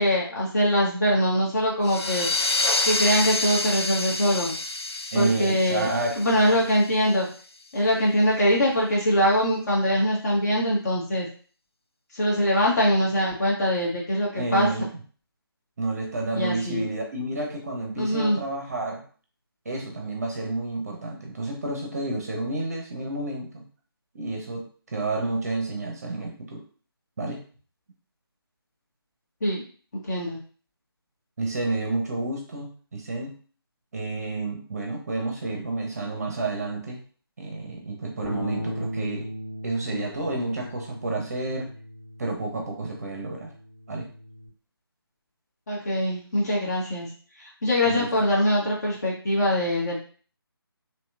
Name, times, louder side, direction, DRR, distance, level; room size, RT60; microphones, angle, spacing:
voice 1, 0.0-2.3 2.8-4.5 5.1-5.9 6.2-7.3 7.7-11.3 12.1-14.7 16.3-16.8 18.0-18.4 29.4-29.6 30.1-30.4 45.7-47.1 47.6-50.0, equal, 40° left, -4 dB, 1.2 m, -23 dB
sound 1, 1.8-7.2, left 3 dB, 90° left, 0.4 m, -28 dB
voice 2, 5.1-6.4 14.3-14.9 15.8-19.0 19.7-23.6 24.1-26.6 27.2-27.4 31.4-33.3 33.9-37.0 37.4-39.3 39.6-41.7 42.2-43.5 43.9-44.1 47.8-48.1, right 2 dB, 40° right, 1 dB, 0.6 m, -30 dB
Bass guitar, 38.2-44.5, left 1 dB, 5° right, 1.1 m, -38 dB
2.8 x 2.8 x 2.3 m, 0.41 s
figure-of-eight pair, 155°, 13 cm